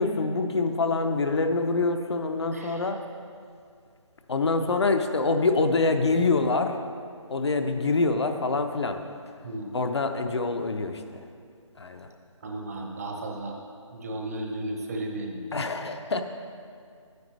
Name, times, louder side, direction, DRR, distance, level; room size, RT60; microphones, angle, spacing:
voice 1, 0.0-3.0 4.3-6.7 7.3-9.0 9.7-11.0 11.8-12.1 15.5-16.2, left 3 dB, 55° left, 6 dB, 0.6 m, -25 dB
voice 2, 2.5-2.9 9.4-9.7 12.4-13.6 13.9-15.4, right 1 dB, 30° right, 1 dB, 0.9 m, -34 dB
11.0 x 9.5 x 3.2 m, 2.2 s
figure-of-eight pair, 155°, 17 cm